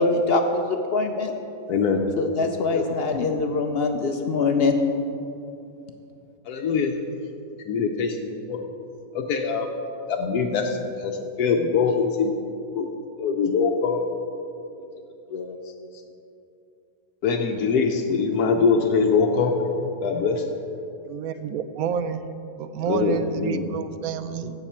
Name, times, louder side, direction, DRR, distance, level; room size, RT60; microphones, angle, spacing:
voice 1, 0.0-1.3 2.2-4.8, left 3 dB, 60° left, 5 dB, 0.6 m, -23 dB
voice 2, 1.7-2.0 2.7-2.9 6.5-6.9 7.7-8.7 9.1-9.7 10.1-12.3 12.7-12.9 13.2-14.0 15.3-15.6 17.2-19.6 20.0-20.5 22.9-23.7 24.4-24.5, left 5 dB, 90° left, 2 dB, 1.2 m, -23 dB
voice 3, 21.0-22.3 22.6-24.5, right 7 dB, 75° right, 11 dB, 1.0 m, -29 dB
15.5 x 6.8 x 4.4 m, 2.7 s
omnidirectional pair, 1.6 m